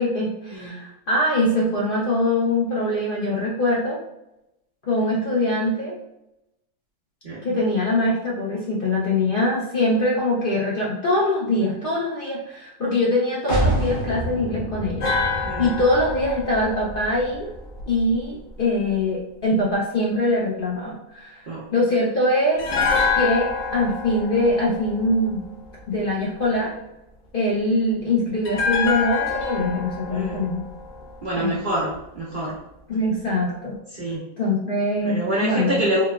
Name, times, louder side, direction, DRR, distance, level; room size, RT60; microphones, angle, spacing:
voice 1, 0.0-4.0 4.8-6.0 7.4-17.5 17.9-21.5 21.7-22.7 23.1-25.4 25.9-26.7 27.3-30.6 31.4-31.6 32.9-33.8 34.4-35.8, left 1 dB, 65° left, -5 dB, 0.5 m, -23 dB
sound 1, 13.5-19.0, right 1 dB, 40° left, 0.8 m, -29 dB
sound 2, 15.0-18.2 22.6-25.8 28.4-31.7 31.9-32.1, left 5 dB, 90° left, 1.4 m, -27 dB
voice 2, 30.1-30.5 31.2-32.6 33.9-34.2 35.0-36.0, right 1 dB, 75° right, -6 dB, 0.4 m, -26 dB
3.9 x 2.2 x 2.3 m, 0.88 s
omnidirectional pair, 1.7 m